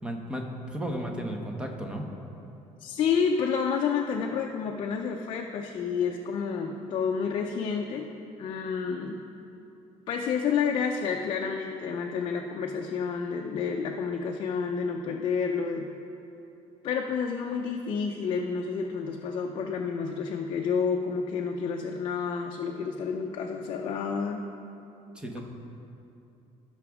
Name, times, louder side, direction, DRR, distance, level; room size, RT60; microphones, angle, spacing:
voice 1, 0.0-2.0 25.1-25.4, equal, 5° right, 2 dB, 0.8 m, -34 dB
voice 2, 2.8-8.1 8.4-9.2 10.1-15.9 16.8-24.4, left 6 dB, 40° left, 1 dB, 0.5 m, -29 dB
16.5 x 6.0 x 3.6 m, 2.8 s
cardioid pair, 180°, 13 cm